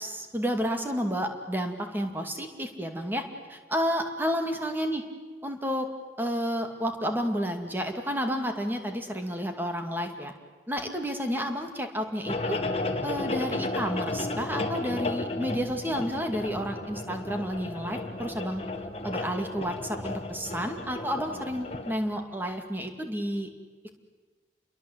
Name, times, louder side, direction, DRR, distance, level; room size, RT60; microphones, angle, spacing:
voice 1, 0.0-3.2 3.5-5.0 5.4-5.9 6.2-10.3 10.7-12.6 13.0-18.6 19.0-23.5, equal, 10° right, 5 dB, 2.3 m, -31 dB
sound 1, 12.3-21.9, left 2 dB, 35° left, 1.7 m, -33 dB
30.0 x 22.5 x 8.1 m, 1.4 s
head